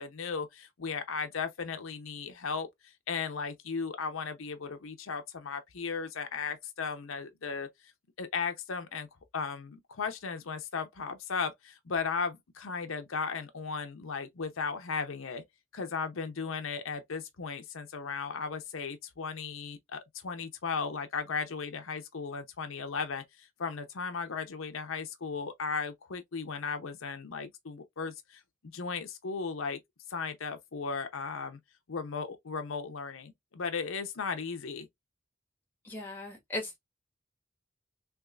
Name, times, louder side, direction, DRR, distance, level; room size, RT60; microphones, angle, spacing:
voice 1, 0.0-7.7 8.2-9.1 9.3-15.4 15.7-28.4 28.7-29.8 30.1-31.6 31.9-34.9, left 5 dB, 80° left, 0.6 m, -36 dB
voice 2, 35.8-36.8, left 2 dB, 10° left, 1.4 m, -37 dB
3.5 x 3.1 x 2.4 m
head